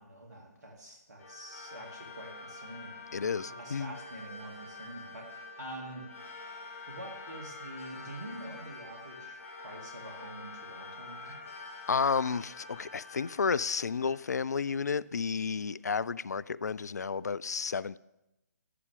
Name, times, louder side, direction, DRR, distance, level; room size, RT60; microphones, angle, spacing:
voice 1, 0.0-6.0 6.9-11.4, right 1 dB, 75° right, 2.4 m, -46 dB
sound 1, 1.2-15.0, left 3 dB, 50° left, 2.0 m, -47 dB
voice 2, 3.1-3.9 11.9-18.0, left 5 dB, 70° left, 0.4 m, -31 dB
11.0 x 11.0 x 3.6 m
figure-of-eight pair, 140°, 9 cm